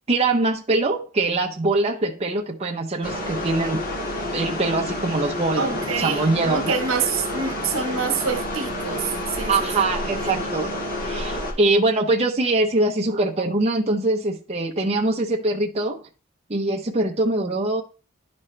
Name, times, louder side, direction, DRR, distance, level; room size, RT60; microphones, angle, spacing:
voice 1, 0.1-3.8 4.3-6.8 9.5-10.7 11.0-16.0 16.5-17.8, right 2 dB, 30° right, 0.7 m, -23 dB
sound 1, 3.0-11.5, left 1 dB, 45° left, 1.8 m, -29 dB
voice 2, 5.6-9.7 10.2-10.5, right 5 dB, 75° right, 1.2 m, -27 dB
11.0 x 5.2 x 3.2 m
head